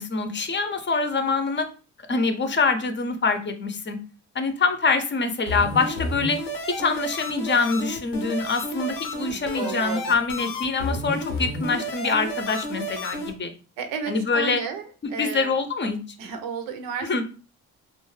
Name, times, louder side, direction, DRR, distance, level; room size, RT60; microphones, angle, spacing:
voice 1, 0.0-1.7 2.1-4.0 4.3-6.4 6.7-13.5 14.1-14.6 15.0-16.0 17.0-17.2, left 4 dB, 35° left, 8 dB, 0.6 m, -25 dB
sound 1, 5.5-13.3, left 1 dB, 90° left, 0.7 m, -31 dB
voice 2, 9.2-10.1 13.8-14.8 15.1-15.5 16.2-17.1, right 6 dB, 85° right, 6 dB, 0.7 m, -32 dB
2.4 x 2.3 x 3.1 m, 0.35 s
supercardioid pair, 65°, 34 cm